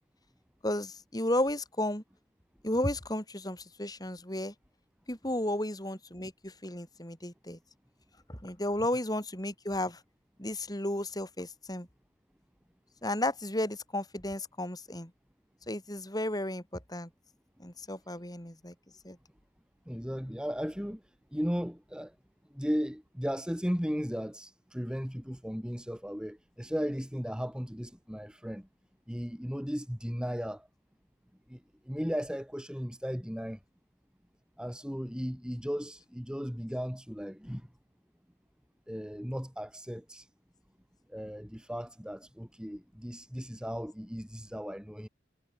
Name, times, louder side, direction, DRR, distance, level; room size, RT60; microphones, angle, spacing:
voice 1, 0.6-2.0 2.6-4.5 5.1-7.6 8.3-10.0 10.4-11.9 13.0-15.1 15.7-16.6 16.9-17.1 17.6-18.7 19.0-19.2, left 1 dB, 20° left, 5.7 m, -33 dB
voice 2, 19.9-21.0 21.3-22.1 22.5-28.7 29.1-30.7 31.5-31.6 31.9-33.6 34.6-37.7 38.9-40.3 41.1-45.1, equal, 5° right, 3.2 m, -36 dB
head